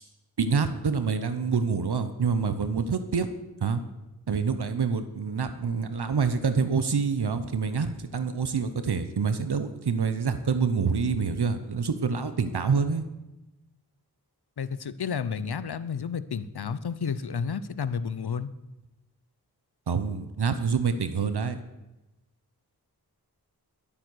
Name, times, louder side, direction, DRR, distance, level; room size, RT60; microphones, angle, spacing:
voice 1, 0.4-3.3 3.6-3.8 4.3-13.0 19.9-21.6, right 5 dB, 80° right, 10 dB, 0.9 m, -26 dB
voice 2, 14.6-18.5, left 6 dB, 75° left, 15 dB, 0.7 m, -31 dB
12.5 x 8.6 x 6.3 m, 1.0 s
wide cardioid pair, 45°, 39 cm